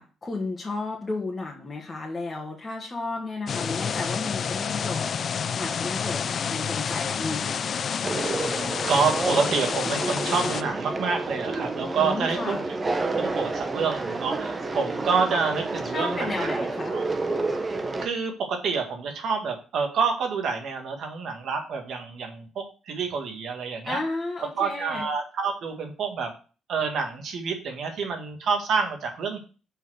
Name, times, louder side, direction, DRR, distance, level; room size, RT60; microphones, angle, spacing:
voice 1, 0.0-5.1 5.5-7.8 11.9-12.7 15.9-17.0 23.8-25.1, left 3 dB, 25° left, -2 dB, 1.5 m, -33 dB
sound 1, 3.5-10.6, left 7 dB, 50° left, 0.4 m, -29 dB
Conversation, 8.0-18.0, right 3 dB, 30° right, 0.8 m, -30 dB
voice 2, 8.9-12.6 13.1-16.5 16.9-17.0 18.0-24.0 24.6-26.3 26.7-29.4, right 5 dB, 70° right, 4 dB, 1.8 m, -28 dB
5.5 x 4.2 x 6.1 m, 0.36 s
cardioid pair, 90°, 0 cm